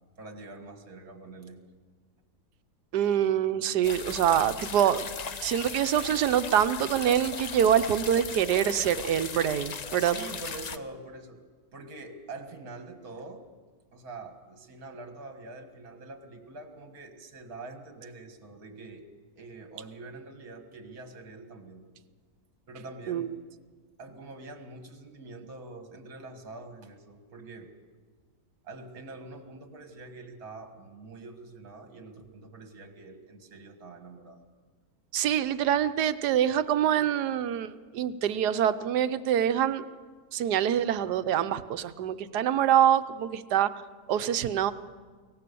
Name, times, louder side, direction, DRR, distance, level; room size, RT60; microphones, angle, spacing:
voice 1, 0.2-1.6 10.0-11.4 11.7-13.5 13.9-19.1 19.4-21.8 22.7-23.3 24.0-27.7 28.6-34.4, right 3 dB, 65° right, 6 dB, 2.3 m, -45 dB
voice 2, 2.9-5.0 5.4-10.1 23.1-23.3 35.1-39.8 40.3-43.7 44.1-44.7, right 10 dB, 80° right, 13 dB, 1.3 m, -25 dB
sound 1, 3.8-10.8, left 6 dB, 85° left, 0.3 m, -38 dB
23.0 x 18.5 x 6.9 m, 1.5 s
omnidirectional pair, 1.7 m